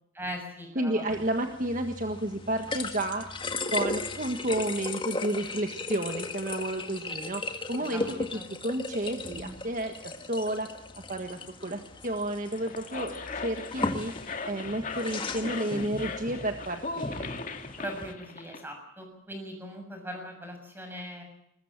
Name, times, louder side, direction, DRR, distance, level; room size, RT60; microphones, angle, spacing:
voice 1, 0.1-1.0 7.9-8.1 8.3-8.5 17.8-21.2, equal, 10° right, 4 dB, 6.9 m, -40 dB
voice 2, 0.7-3.3 3.7-7.4 7.7-8.0 8.3-10.7 11.1-14.1 14.4-17.3, right 1 dB, 40° right, 6 dB, 1.6 m, -31 dB
sound 1, 1.1-18.1, left 3 dB, 25° left, 1.8 m, -37 dB
sound 2, 12.4-18.6, left 4 dB, 40° left, 2.1 m, -38 dB
22.5 x 20.5 x 7.5 m, 0.76 s
head